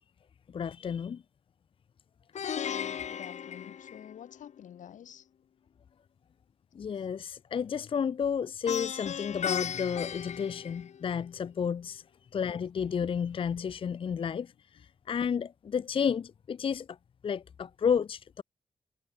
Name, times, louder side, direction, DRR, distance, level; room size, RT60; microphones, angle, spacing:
voice 1, 0.5-1.2 6.7-12.0 12.3-17.0 17.2-18.4, left 7 dB, 45° left, 0.5 m, -32 dB
Plucked string instrument, 2.4-4.5 8.7-11.3, left 8 dB, 65° left, 2.9 m, -36 dB
voice 2, 2.6-5.3 6.9-7.1 14.7-14.8, left 10 dB, 85° left, 5.6 m, -49 dB
cardioid pair, 115°, 13 cm